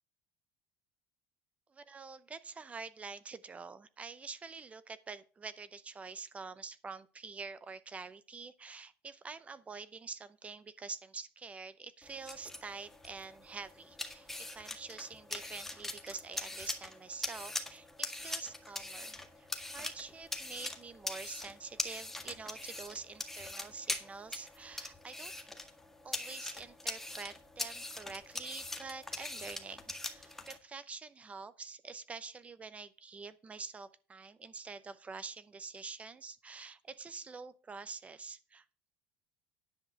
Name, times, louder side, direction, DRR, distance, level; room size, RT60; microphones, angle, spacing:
voice 1, 1.7-25.3 26.0-38.6, right 4 dB, 25° right, 15 dB, 0.7 m, -47 dB
sound 1, 12.0-30.6, left 1 dB, 5° left, 1.8 m, -42 dB
10.0 x 5.4 x 6.7 m, 0.36 s
supercardioid pair, 110°, 6 cm